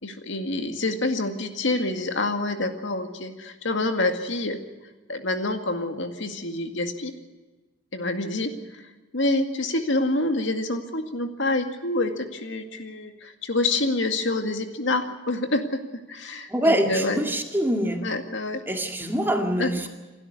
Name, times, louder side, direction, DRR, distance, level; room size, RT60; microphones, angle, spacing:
voice 1, 0.0-4.6 5.1-7.1 7.9-8.5 9.1-15.8 16.1-17.2 18.0-18.6 19.6-19.7, left 2 dB, 65° left, 6 dB, 2.1 m, -27 dB
voice 2, 16.5-18.0 18.7-19.9, equal, 10° right, 4 dB, 2.0 m, -24 dB
28.0 x 12.5 x 8.3 m, 1.2 s
head